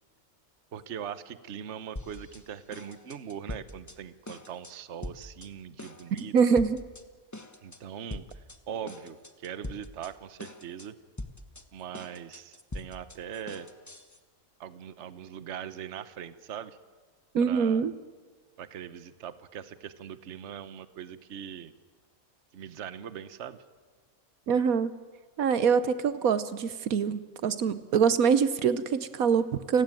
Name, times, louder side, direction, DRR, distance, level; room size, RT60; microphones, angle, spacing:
voice 1, 0.7-6.3 7.6-11.0 11.7-13.7 14.6-16.8 17.4-17.8 18.6-21.7 22.5-23.6, right 8 dB, 55° right, 13 dB, 1.2 m, -41 dB
sound 1, 2.0-2.4 2.7-4.0 4.3-4.7 5.0-5.5 5.8-7.0 7.3-7.8 8.1-8.6 8.9-10.1 10.4-10.9 11.2-14.2, left 1 dB, 15° left, 1.1 m, -42 dB
voice 2, 6.1-6.8 17.3-17.9 24.5-24.9 25.4-29.8, right 6 dB, 75° right, 14 dB, 1.4 m, -24 dB
29.5 x 17.0 x 9.0 m, 1.4 s
omnidirectional pair, 1.5 m